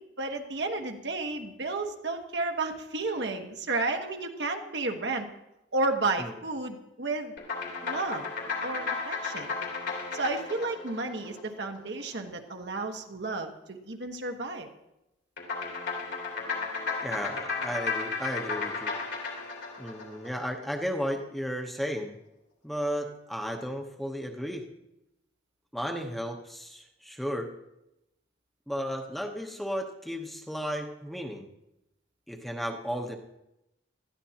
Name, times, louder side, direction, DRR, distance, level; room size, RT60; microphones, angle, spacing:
voice 1, 0.0-5.3 5.7-7.3 7.8-8.2 8.6-9.5 10.1-14.7, right 3 dB, 65° right, 4 dB, 1.3 m, -32 dB
sound 1, 7.4-12.0 15.4-20.8, left 4 dB, 70° left, 3.3 m, -34 dB
voice 2, 17.0-18.9 19.8-22.1 22.6-24.6 25.7-27.5 28.7-31.5 32.3-33.2, equal, ahead, 2 dB, 0.9 m, -34 dB
19.5 x 13.5 x 2.9 m, 0.89 s
head